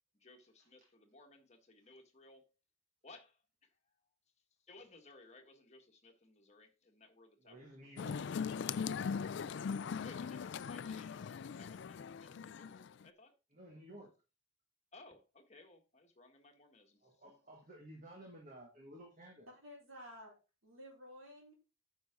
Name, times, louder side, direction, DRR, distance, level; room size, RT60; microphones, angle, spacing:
voice 1, 0.2-2.5 3.0-3.7 4.7-7.7 10.0-13.3 14.9-17.0, left 3 dB, 30° left, 1.5 m, -60 dB
voice 2, 7.4-8.2 13.5-14.1 17.0-19.5, right 1 dB, 35° right, 1.7 m, -54 dB
sound 1, 8.0-13.0, left 6 dB, 55° left, 0.3 m, -40 dB
voice 3, 19.5-21.5, equal, 75° right, 4.4 m, -53 dB
9.2 x 6.3 x 3.7 m
head